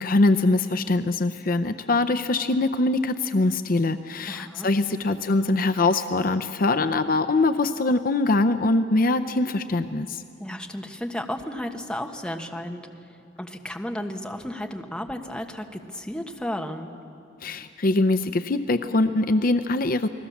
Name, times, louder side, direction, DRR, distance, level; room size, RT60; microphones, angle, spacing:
voice 1, 0.0-10.2 17.4-20.1, left 2 dB, 50° left, 11 dB, 0.6 m, -23 dB
voice 2, 4.3-5.0 10.4-12.9 13.4-16.9, left 1 dB, 5° left, 3 dB, 1.4 m, -33 dB
29.5 x 20.0 x 7.2 m, 2.5 s
head